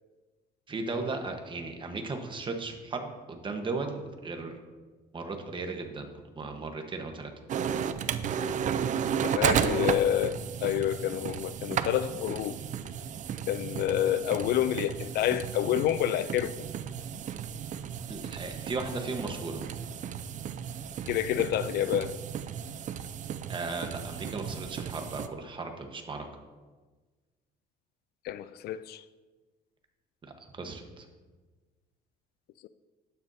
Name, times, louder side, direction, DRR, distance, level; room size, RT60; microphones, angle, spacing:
voice 1, 0.7-4.5 5.1-6.1 6.3-7.3 18.1-19.6 23.5-26.3 30.5-31.1, right 3 dB, 30° right, 1.2 m, -36 dB
sound 1, 7.5-25.3, right 8 dB, 50° right, 0.5 m, -34 dB
voice 2, 9.2-12.6 13.5-16.7 21.1-22.1 28.2-29.0 32.6-32.7, left 11 dB, 70° left, 0.4 m, -28 dB
11.5 x 9.3 x 2.8 m
cardioid pair, 110°, 17 cm